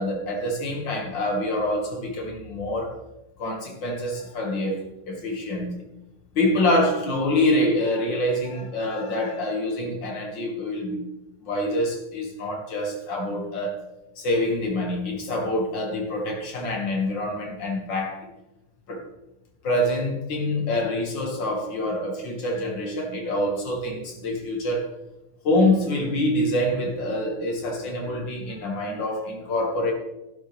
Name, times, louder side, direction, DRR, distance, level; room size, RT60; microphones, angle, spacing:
voice 1, 0.0-3.0 3.4-5.8 6.3-11.1 11.4-13.8 14.2-18.2 18.9-19.0 19.6-24.9 25.4-29.9, left 1 dB, 80° left, 1 dB, 2.7 m, -26 dB
12.0 x 11.5 x 3.4 m, 0.98 s
omnidirectional pair, 2.0 m